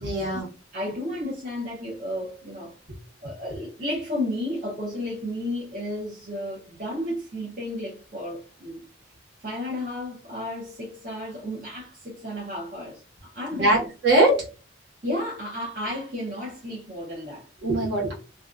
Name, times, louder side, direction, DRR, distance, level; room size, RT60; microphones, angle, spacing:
voice 1, 0.0-0.5 13.5-14.4 17.6-18.1, right 1 dB, 60° right, 1.2 m, -21 dB
voice 2, 0.7-2.7 3.2-8.8 9.4-13.9 15.0-17.4, left 1 dB, 40° right, 0.8 m, -32 dB
2.6 x 2.3 x 2.4 m
head